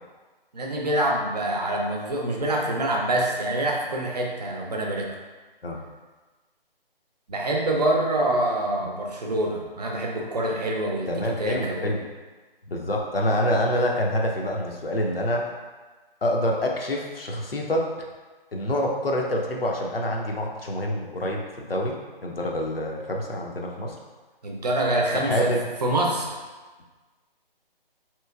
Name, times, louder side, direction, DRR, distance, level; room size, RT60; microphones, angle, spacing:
voice 1, 0.5-5.1 7.3-11.1 11.4-11.9 24.4-25.5 25.8-26.4, right 1 dB, 45° right, 0 dB, 0.6 m, -25 dB
voice 2, 11.1-12.0 12.7-15.5 16.2-17.9 18.5-24.0 25.3-25.7, left 1 dB, 75° left, 0 dB, 0.7 m, -26 dB
4.1 x 3.0 x 2.3 m, 1.3 s
figure-of-eight pair, 150°, 29 cm